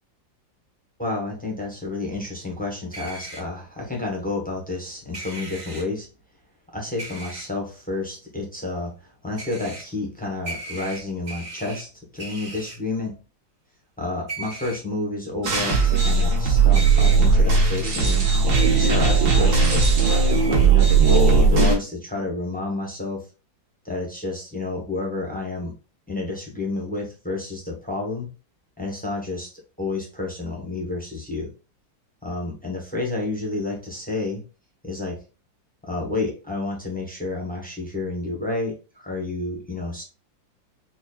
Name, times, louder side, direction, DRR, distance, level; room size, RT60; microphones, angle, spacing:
voice 1, 1.0-6.1 6.7-13.2 14.0-18.2 18.7-19.9 20.5-23.2 23.8-25.7 26.1-28.3 28.8-29.5 29.8-31.5 32.2-34.4 34.8-35.2 35.8-40.0, left 2 dB, 15° left, -1 dB, 0.3 m, -30 dB
sound 1, 2.9-3.4 5.1-5.8 7.0-7.4 9.4-9.8 10.4-11.8 12.2-12.8 14.3-14.8 15.5-15.6 16.7-17.2 18.5-18.9 20.3-20.7, right 2 dB, 70° right, 0.4 m, -37 dB
sound 2, 15.4-21.8, right 4 dB, 90° right, 2.0 m, -17 dB
5.9 x 2.2 x 2.3 m, 0.33 s
omnidirectional pair, 2.0 m